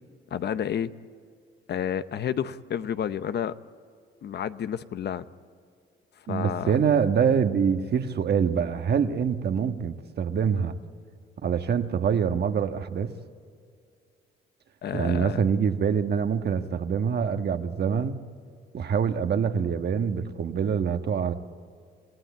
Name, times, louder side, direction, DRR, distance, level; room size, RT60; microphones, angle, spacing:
voice 1, 0.3-0.9 1.7-3.5 4.2-5.2 6.3-6.8 14.8-15.4, left 9 dB, 60° left, 12 dB, 0.8 m, -30 dB
voice 2, 6.3-10.7 11.4-13.1 14.9-18.2 18.7-21.3, right 7 dB, 55° right, 7 dB, 1.4 m, -25 dB
27.5 x 16.0 x 8.6 m, 2.3 s
cardioid pair, 90°, 20 cm